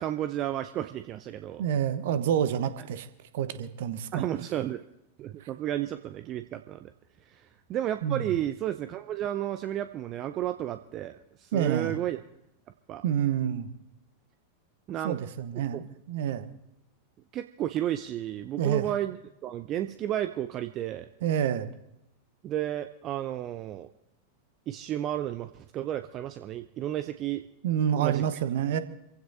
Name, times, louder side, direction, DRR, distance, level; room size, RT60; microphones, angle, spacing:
voice 1, 0.0-1.7 4.1-4.8 5.2-6.9 7.3-12.2 12.9-13.0 14.9-15.2 15.7-15.8 17.3-19.2 19.4-21.1 22.4-23.9 24.7-27.4 27.9-28.2, right 12 dB, 35° right, 11 dB, 0.6 m, -32 dB
voice 2, 1.6-3.1 3.3-4.3 8.0-8.3 11.5-12.0 13.0-13.7 15.0-16.5 18.6-18.9 21.2-21.7 27.6-28.8, right 9 dB, 55° right, 11 dB, 1.1 m, -28 dB
26.5 x 15.5 x 2.8 m, 0.83 s
figure-of-eight pair, 90°, 0 cm